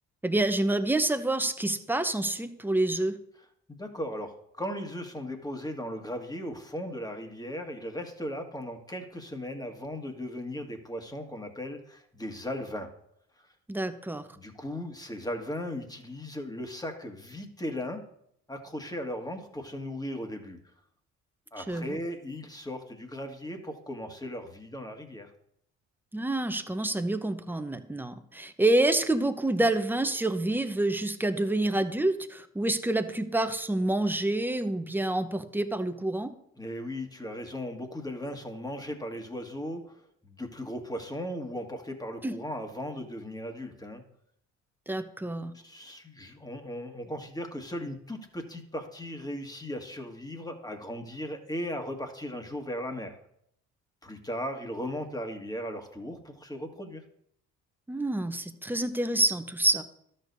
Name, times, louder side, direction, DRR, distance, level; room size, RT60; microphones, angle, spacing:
voice 1, 0.2-3.2 13.7-14.2 21.6-22.0 26.1-36.3 42.2-42.4 44.9-45.5 57.9-59.8, right 2 dB, 5° right, 9 dB, 0.9 m, -27 dB
voice 2, 3.7-12.9 13.4-13.5 14.4-18.0 18.5-20.6 21.5-25.3 36.6-40.0 40.2-44.0 45.5-53.1 54.0-57.0, equal, 10° left, 5 dB, 1.7 m, -37 dB
13.0 x 6.6 x 2.7 m, 0.72 s
hypercardioid pair, 55°, 34 cm